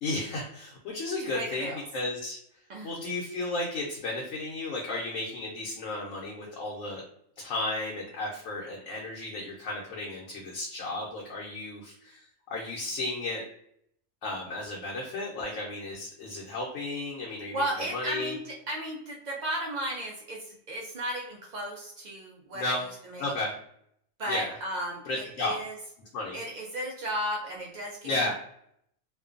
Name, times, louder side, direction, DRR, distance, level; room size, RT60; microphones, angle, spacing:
voice 1, 0.0-2.4 2.8-7.0 7.4-12.2 12.5-13.4 14.2-17.6 17.9-18.3 22.5-22.8 23.2-23.6 24.3-24.5 25.0-25.6 26.1-26.4 28.0-28.3, left 2 dB, 80° left, -3 dB, 1.0 m, -33 dB
voice 2, 1.3-1.8 2.7-3.0 17.5-22.8 23.1-23.3 24.2-25.7 26.3-28.3, right 1 dB, 85° right, -1 dB, 0.4 m, -34 dB
2.5 x 2.2 x 2.4 m, 0.70 s
omnidirectional pair, 1.3 m